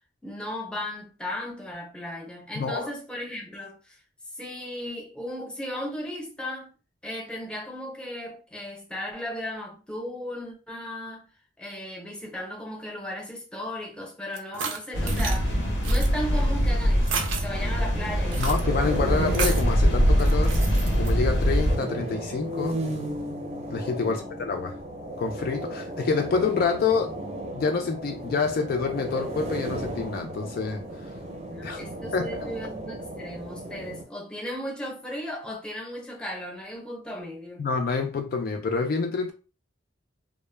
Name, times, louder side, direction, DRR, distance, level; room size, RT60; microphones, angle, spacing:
voice 1, 0.2-4.0 4.3-6.7 7.0-11.3 11.6-15.5 15.8-18.5 24.0-24.3 31.4-37.7, left 1 dB, 5° left, 0.6 m, -36 dB
voice 2, 2.6-2.9 18.4-20.6 21.0-22.8 23.7-24.8 25.2-27.2 27.5-30.8 31.6-31.8 32.1-32.3 37.6-39.3, left 4 dB, 50° left, 0.3 m, -27 dB
sound 1, 14.4-15.4 15.8-16.1 17.0-17.5 18.3-18.6 19.3-19.7 20.2-21.1, right 6 dB, 80° right, 0.5 m, -32 dB
sound 2, 14.9-21.8, equal, 90° left, 0.7 m, -23 dB
sound 3, 17.9-34.0, right 1 dB, 35° right, 0.6 m, -35 dB
2.1 x 2.0 x 3.2 m
head